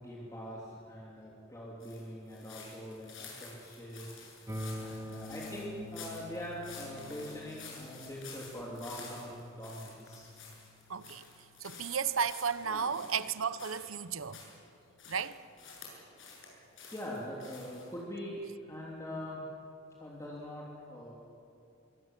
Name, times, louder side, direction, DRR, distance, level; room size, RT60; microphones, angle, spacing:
voice 1, 0.0-4.1 4.8-10.3 12.6-13.0 16.9-19.4 20.0-21.1, equal, 15° left, 3.3 m, -43 dB
sound 1, 1.8-14.6 15.0-16.5 16.8-18.0, left 5 dB, 65° left, 8.0 m, -51 dB
sound 2, 4.5-14.4, left 1 dB, 15° right, 1.8 m, -48 dB
voice 2, 10.9-11.2 11.6-14.4 15.1-15.4, right 6 dB, 70° right, 1.0 m, -33 dB
25.0 x 23.0 x 7.6 m
head